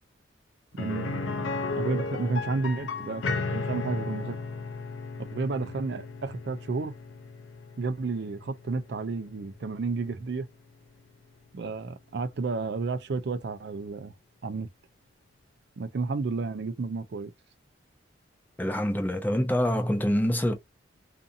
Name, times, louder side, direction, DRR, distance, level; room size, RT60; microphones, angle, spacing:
voice 1, 0.7-1.5 1.7-3.2 3.5-4.4 5.3-6.9 7.8-10.5 11.5-14.1 14.4-14.7 15.8-17.3, right 4 dB, 60° right, 0.4 m, -31 dB
sound 1, 0.8-10.5 10.9-11.0 13.4-13.5, left 3 dB, 80° left, 0.5 m, -35 dB
voice 2, 18.6-20.5, equal, 10° left, 0.4 m, -25 dB
2.6 x 2.5 x 2.4 m
head